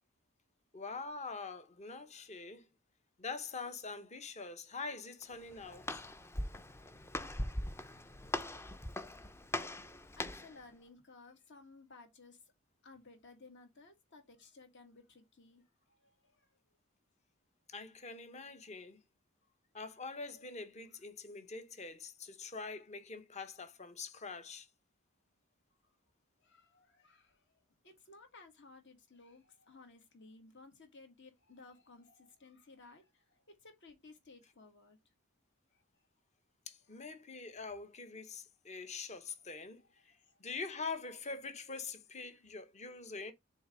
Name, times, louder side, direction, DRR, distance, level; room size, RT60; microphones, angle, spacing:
voice 1, 0.7-2.7 3.2-6.0 17.7-19.0 19.7-24.7 36.7-43.3, left 4 dB, 35° left, 0.9 m, -44 dB
Walk footsteps, 5.2-10.6, left 1 dB, 10° left, 0.5 m, -41 dB
voice 2, 9.1-12.5 12.8-16.6 19.4-19.5 20.9-21.0 22.2-22.3 25.8-26.0 26.4-35.0 35.7-36.1 36.8-37.6 40.0-40.4, left 3 dB, 60° left, 1.9 m, -59 dB
7.0 x 3.2 x 5.0 m
head